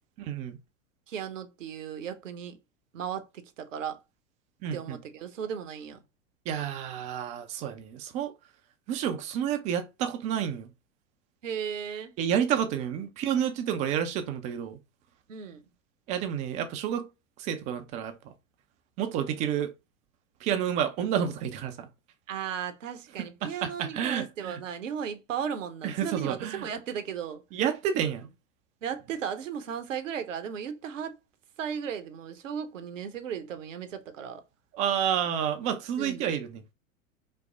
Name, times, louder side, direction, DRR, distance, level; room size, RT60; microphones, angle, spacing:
voice 1, 0.2-0.6 4.6-5.0 6.5-8.3 8.9-10.7 12.2-14.8 16.1-17.1 17.4-18.3 19.0-19.7 20.4-21.9 23.2-24.6 25.8-26.7 27.5-28.3 34.7-36.6, right 9 dB, 20° right, 0.4 m, -30 dB
voice 2, 1.1-2.6 2.9-4.0 4.7-6.0 11.4-12.2 15.3-15.6 22.3-27.4 28.8-31.2 31.6-34.4 36.0-36.3, right 8 dB, 65° right, 0.8 m, -36 dB
5.3 x 2.0 x 3.7 m
figure-of-eight pair, 90°, 41 cm